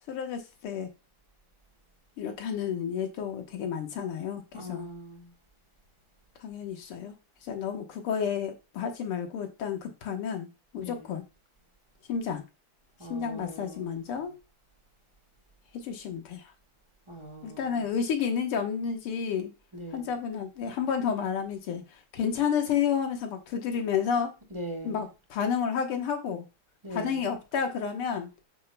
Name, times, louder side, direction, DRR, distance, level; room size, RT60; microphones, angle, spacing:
voice 1, 0.1-0.9 2.2-4.9 6.4-7.1 7.5-10.5 10.7-11.2 12.1-12.4 13.1-14.3 15.8-16.4 17.4-19.5 19.9-21.8 22.1-24.3 24.8-26.5 26.9-28.3, left 7 dB, 90° left, 2.2 m, -31 dB
voice 2, 4.5-5.3 10.8-11.1 13.0-14.3 17.1-17.9 19.7-20.1 24.5-25.0 26.8-27.2, equal, 15° right, 1.4 m, -41 dB
7.4 x 7.0 x 2.2 m
omnidirectional pair, 2.4 m